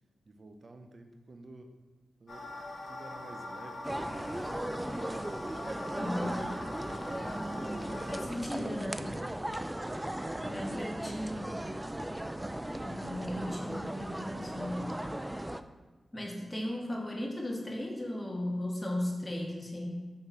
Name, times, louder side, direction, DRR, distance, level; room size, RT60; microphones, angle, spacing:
voice 1, 0.3-1.7 2.2-5.2, right 2 dB, 55° right, 6 dB, 0.6 m, -52 dB
sound 1, 2.3-8.3, left 1 dB, 65° left, 1.1 m, -43 dB
sound 2, 3.8-15.6, right 1 dB, 15° right, 0.3 m, -37 dB
voice 2, 6.0-6.5 7.8-9.1 10.4-11.6 12.8-14.9 16.1-20.1, left 1 dB, 20° left, -1 dB, 1.4 m, -36 dB
5.3 x 4.2 x 4.5 m, 1.3 s
cardioid pair, 55°, 0 cm